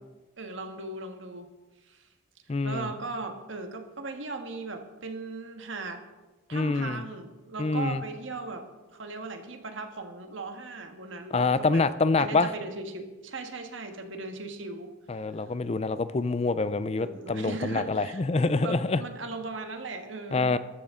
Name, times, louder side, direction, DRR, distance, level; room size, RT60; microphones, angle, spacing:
voice 1, 0.4-1.5 1.8-2.0 2.6-6.0 6.5-8.7 8.9-11.8 12.2-14.9 17.0-20.6, right 3 dB, 75° right, 6 dB, 1.5 m, -38 dB
voice 2, 2.5-2.9 6.5-7.0 7.6-8.0 11.3-12.5 15.1-19.0 20.3-20.6, left 3 dB, 30° left, 14 dB, 0.4 m, -26 dB
14.0 x 11.5 x 3.8 m, 1.2 s
head